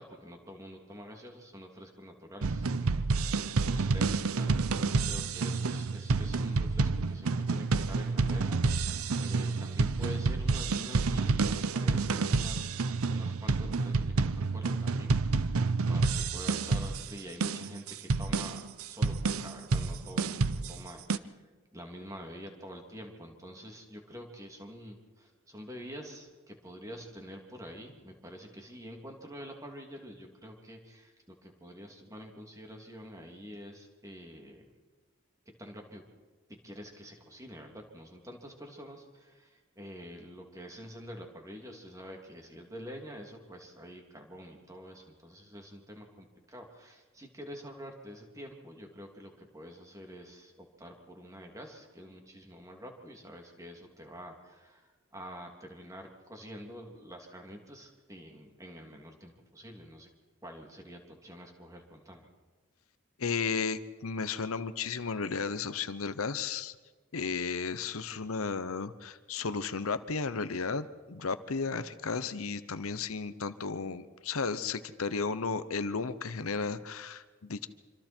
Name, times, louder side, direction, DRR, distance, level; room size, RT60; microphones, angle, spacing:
voice 1, 0.0-8.8 9.2-12.8 13.0-15.6 15.9-21.4 21.7-34.6 35.6-36.0 36.5-60.1 60.4-62.3, equal, 15° right, 2 dB, 3.0 m, -47 dB
sound 1, 2.4-21.2, right 4 dB, 85° right, 0.7 m, -29 dB
voice 2, 63.2-66.7 67.1-77.7, left 5 dB, 80° left, 13 dB, 0.9 m, -34 dB
26.5 x 25.5 x 4.5 m, 1.3 s
head